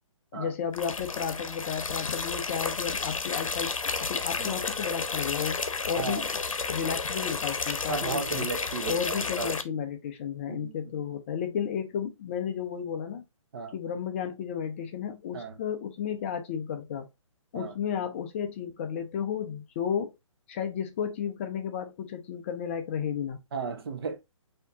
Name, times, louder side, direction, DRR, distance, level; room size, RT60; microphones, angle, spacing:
voice 1, 0.3-3.7 4.0-5.6 5.9-6.4 6.7-8.5 8.9-13.2 13.7-17.1 17.5-20.1 20.5-23.4, left 8 dB, 25° left, 0.5 m, -33 dB
sound 1, 0.7-9.6, left 4 dB, 85° left, 0.8 m, -32 dB
voice 2, 7.9-9.6 10.5-10.7 13.5-13.8 15.3-15.6 17.5-17.7 23.5-24.2, right 5 dB, 45° right, 0.9 m, -34 dB
4.3 x 2.8 x 3.4 m
hypercardioid pair, 150°, 17 cm